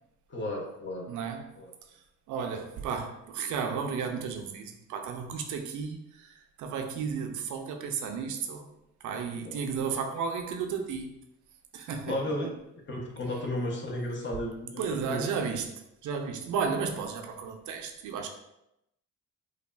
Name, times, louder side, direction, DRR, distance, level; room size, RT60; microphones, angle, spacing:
voice 1, 0.3-1.1 1.6-1.7 9.4-9.6 12.1-12.5 12.9-15.3, left 1 dB, 40° left, 1 dB, 0.6 m, -34 dB
voice 2, 1.1-1.5 1.9-8.7 9.0-11.2 11.7-12.2 14.8-15.7 16.0-18.3, right 6 dB, 75° right, 5 dB, 0.5 m, -33 dB
3.2 x 2.3 x 2.2 m, 0.84 s
cardioid pair, 90°, 30 cm